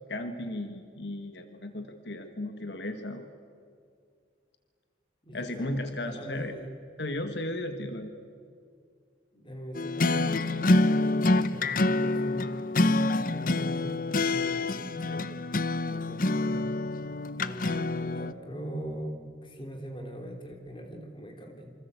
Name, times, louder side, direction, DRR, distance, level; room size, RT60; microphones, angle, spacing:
voice 1, 0.1-3.2 5.3-6.5 7.0-8.1, left 1 dB, 65° left, 7 dB, 1.7 m, -35 dB
voice 2, 5.2-5.7 6.0-6.8 9.3-12.9 13.3-15.2 15.7-16.8 17.4-21.7, equal, 25° left, 3 dB, 3.5 m, -41 dB
sound 1, 9.8-18.3, left 2 dB, 45° left, 0.8 m, -27 dB
27.5 x 25.5 x 8.3 m, 2.3 s
head